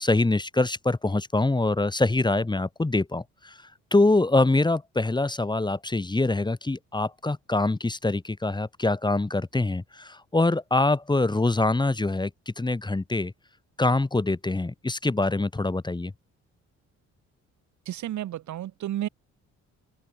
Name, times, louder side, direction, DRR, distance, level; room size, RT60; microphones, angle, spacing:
voice 1, 0.0-3.6 3.9-12.3 12.6-13.3 13.8-16.1, left 2 dB, 15° left, 1.7 m, -24 dB
voice 2, 17.9-19.1, right 12 dB, 70° right, 1.8 m, -32 dB
open air
cardioid pair, 90°, 30 cm